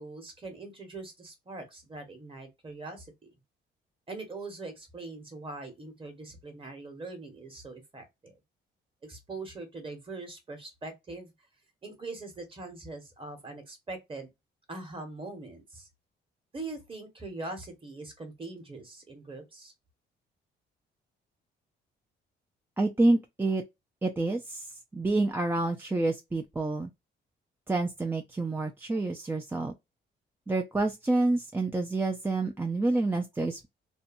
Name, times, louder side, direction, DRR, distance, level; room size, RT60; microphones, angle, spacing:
voice 1, 0.0-3.3 4.1-8.3 9.0-11.3 11.8-14.3 14.7-15.9 16.5-19.7, right 3 dB, 25° right, 1.2 m, -42 dB
voice 2, 22.8-23.6 24.0-26.9 27.7-29.7 30.5-33.7, right 2 dB, 10° right, 0.4 m, -28 dB
2.7 x 2.2 x 2.5 m
cardioid pair, 90°, 20 cm